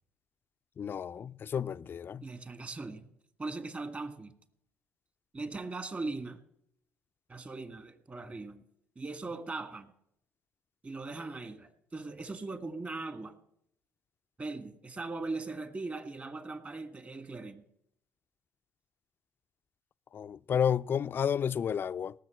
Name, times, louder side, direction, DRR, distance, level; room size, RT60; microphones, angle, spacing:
voice 1, 0.8-2.2 20.1-22.1, left 8 dB, 45° left, 0.4 m, -31 dB
voice 2, 2.2-3.1 3.4-4.3 5.3-6.4 7.3-8.6 9.0-9.9 10.8-13.4 14.4-17.6, right 3 dB, 30° right, 1.9 m, -39 dB
18.0 x 6.9 x 7.8 m
hypercardioid pair, 65°, 5 cm